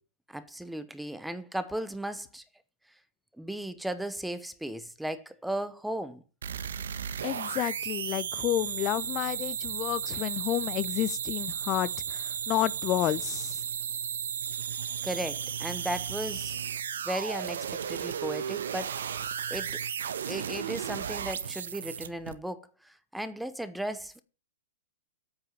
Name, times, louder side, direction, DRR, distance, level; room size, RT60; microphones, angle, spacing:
voice 1, 0.3-2.4 3.4-6.2 15.0-16.5 17.0-19.0 19.5-19.8 20.3-24.2, right 1 dB, 5° right, 1.0 m, -36 dB
sound 1, 6.4-22.3, right 8 dB, 80° right, 1.3 m, -34 dB
voice 2, 7.2-13.6, left 14 dB, 30° left, 0.6 m, -30 dB
9.0 x 8.6 x 9.3 m
hypercardioid pair, 135°, 0 cm